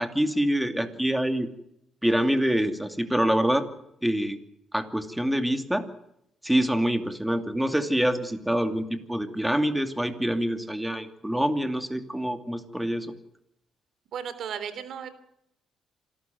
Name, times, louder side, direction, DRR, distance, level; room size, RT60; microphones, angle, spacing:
voice 1, 0.0-1.5 2.0-3.6 4.0-4.4 4.7-5.8 6.4-13.1, equal, 5° right, 8 dB, 2.6 m, -26 dB
voice 2, 14.1-15.1, right 8 dB, 70° right, 13 dB, 3.3 m, -35 dB
27.0 x 12.5 x 9.3 m, 0.79 s
cardioid pair, 90°, 0 cm